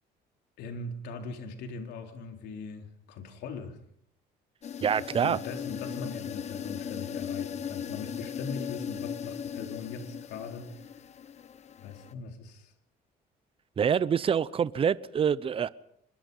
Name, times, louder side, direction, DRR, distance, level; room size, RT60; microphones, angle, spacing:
voice 1, 0.6-3.8 5.0-11.0 11.8-12.7, left 4 dB, 80° left, 4.0 m, -40 dB
sound 1, 4.6-12.1, left 8 dB, 40° left, 1.0 m, -38 dB
voice 2, 4.8-5.4 13.8-15.7, right 7 dB, 35° right, 0.7 m, -26 dB
25.5 x 22.0 x 5.6 m
cardioid pair, 110°, 17 cm